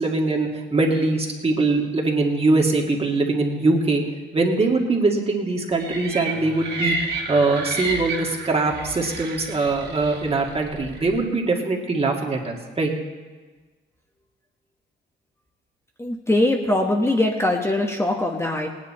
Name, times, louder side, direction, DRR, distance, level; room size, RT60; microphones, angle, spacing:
voice 1, 0.0-4.0 4.3-12.9, right 3 dB, 30° right, 1 dB, 2.1 m, -22 dB
sound 1, 5.8-11.2, right 3 dB, 55° right, 2.4 m, -31 dB
voice 2, 16.0-18.7, left 1 dB, 15° left, 1 dB, 1.3 m, -22 dB
18.5 x 9.7 x 4.3 m, 1.3 s
cardioid pair, 90°, 20 cm